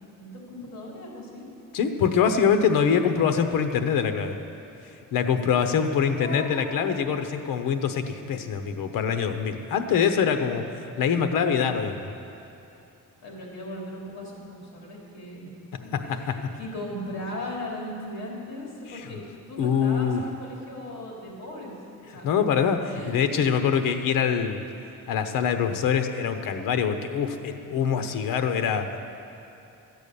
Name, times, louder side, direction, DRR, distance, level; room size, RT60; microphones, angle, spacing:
voice 1, 0.2-1.5 6.1-7.0 13.2-15.5 15.8-22.3 22.9-23.1, left 1 dB, 50° left, -3 dB, 3.4 m, -38 dB
voice 2, 1.7-4.4 5.1-12.1 18.9-19.0 19.6-20.2 22.2-24.6 25.1-29.0, left 7 dB, 70° left, 7 dB, 1.0 m, -24 dB
13.5 x 8.3 x 6.9 m, 2.8 s
cardioid pair, 165°, 35 cm